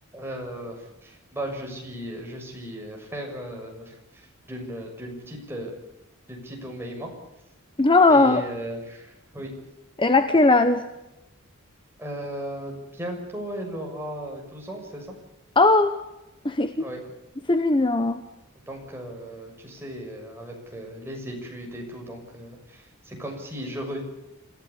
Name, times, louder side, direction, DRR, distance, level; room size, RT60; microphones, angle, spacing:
voice 1, 0.1-5.7 6.3-7.1 8.1-9.5 12.0-15.2 16.8-17.0 18.7-24.0, right 1 dB, 10° right, 0 dB, 6.7 m, -36 dB
voice 2, 7.8-8.4 10.0-10.8 15.6-16.0 16.4-16.9 17.5-18.2, left 3 dB, 25° left, 9 dB, 1.0 m, -18 dB
27.0 x 15.0 x 8.5 m, 0.94 s
head